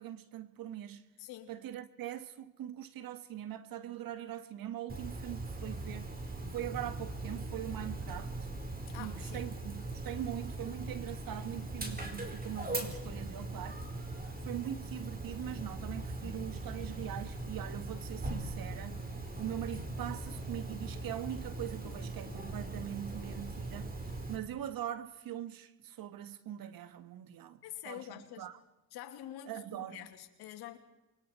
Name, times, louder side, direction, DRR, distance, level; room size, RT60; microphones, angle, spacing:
voice 1, 0.0-1.0 1.5-6.1 6.5-8.5 9.0-13.8 14.4-19.0 19.4-23.9 24.3-27.6 27.8-28.1 28.4-28.6 29.5-30.1, right 11 dB, 60° right, 1.7 m, -42 dB
Dog, 4.9-24.4, right 2 dB, 25° right, 4.4 m, -40 dB
voice 2, 8.9-9.5 27.6-28.5 28.9-30.8, left 12 dB, 75° left, 2.8 m, -46 dB
28.5 x 23.0 x 4.5 m
supercardioid pair, 65°, 39 cm